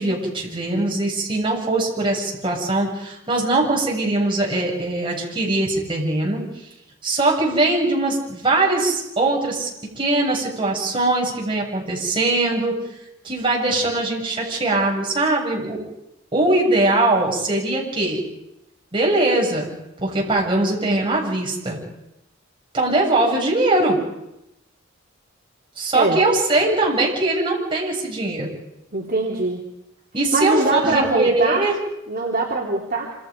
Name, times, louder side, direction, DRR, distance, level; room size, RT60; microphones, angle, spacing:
voice 1, 0.0-6.4 7.0-9.7 10.0-12.8 13.2-15.8 16.3-18.2 18.9-19.7 20.0-21.8 22.7-24.0 25.8-28.5 30.1-31.8, right 2 dB, 25° right, -2 dB, 7.6 m, -21 dB
voice 2, 28.9-29.7 30.3-31.7 32.1-33.1, right 2 dB, 45° right, -3 dB, 3.5 m, -22 dB
27.5 x 27.5 x 5.4 m, 0.88 s
head